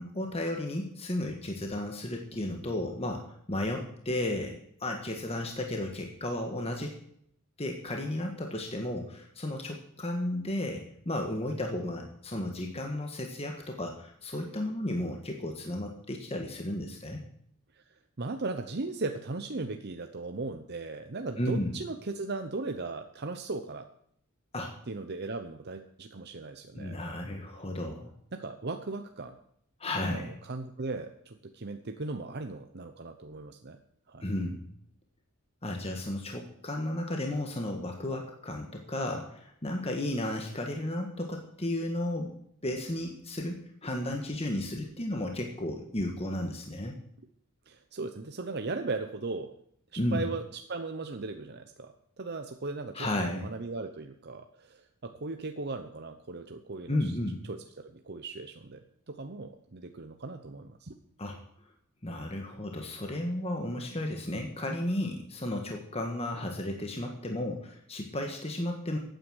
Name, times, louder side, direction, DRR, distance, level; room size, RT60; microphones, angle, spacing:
voice 1, 0.0-6.9 7.6-17.2 21.4-21.8 24.5-24.7 26.7-28.1 29.8-30.3 34.2-34.7 35.6-42.4 42.6-47.0 50.0-50.2 52.9-53.5 56.9-57.4 61.2-61.4 62.0-69.0, left 1 dB, 30° left, 2 dB, 1.5 m, -33 dB
voice 2, 17.7-23.9 24.9-27.0 27.3-27.4 28.3-29.4 30.1-33.8 34.1-34.2 47.7-49.5 49.9-57.1 57.5-61.0, right 3 dB, 50° right, 6 dB, 0.8 m, -38 dB
15.0 x 9.3 x 6.4 m, 0.70 s
head